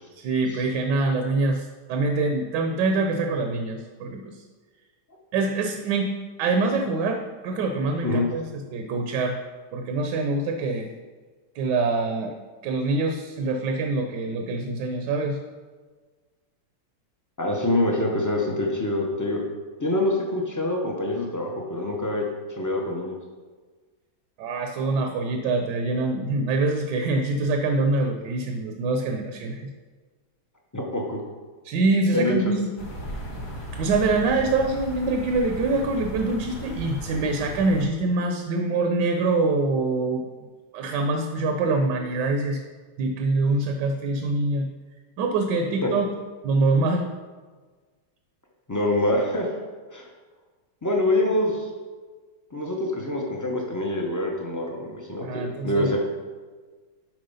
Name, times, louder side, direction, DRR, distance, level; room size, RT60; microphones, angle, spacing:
voice 1, 0.2-4.4 5.3-6.1 6.4-9.4 9.7-10.9 11.5-12.3 12.6-15.4 24.4-29.7 31.6-32.7 33.7-40.2 40.7-42.6 43.0-44.7 45.2-46.1 46.4-47.1 55.2-55.9, right 3 dB, 75° right, 4 dB, 1.3 m, -25 dB
voice 2, 17.4-19.4 19.8-23.2 30.7-31.2 32.1-32.3 45.8-45.9 48.7-49.5 49.9-50.1 50.8-51.7 52.5-56.0, left 1 dB, 25° left, 0 dB, 0.3 m, -25 dB
sound 1, 32.8-37.9, equal, 50° left, 1.6 m, -36 dB
7.7 x 4.3 x 5.5 m, 1.4 s
omnidirectional pair, 2.0 m